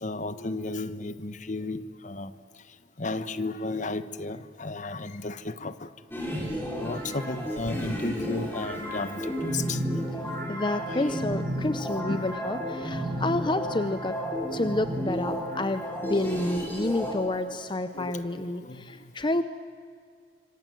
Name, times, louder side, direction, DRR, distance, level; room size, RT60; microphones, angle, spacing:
voice 1, 0.0-2.3 3.0-5.7 6.8-9.8 12.1-12.2 17.0-17.1 17.9-18.2 18.7-18.8, left 2 dB, 45° left, 14 dB, 1.1 m, -33 dB
sound 1, 6.1-17.1, equal, 10° left, 5.9 m, -32 dB
voice 2, 10.5-14.2 14.5-19.4, left 2 dB, 30° left, 11 dB, 0.8 m, -29 dB
26.5 x 25.0 x 7.8 m, 2.3 s
head